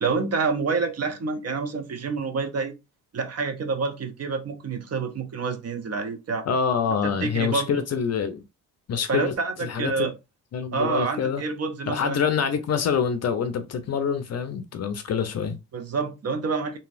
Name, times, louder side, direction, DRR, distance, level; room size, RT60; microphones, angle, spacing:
voice 1, 0.0-2.7 3.1-6.5 7.0-7.8 9.1-10.1 10.7-12.2 15.7-16.8, right 4 dB, 35° right, 0.8 m, -28 dB
voice 2, 6.5-8.4 8.9-10.1 10.5-11.4 11.9-15.6, left 6 dB, 40° left, 0.6 m, -26 dB
2.9 x 2.7 x 2.6 m
supercardioid pair, 75°, 41 cm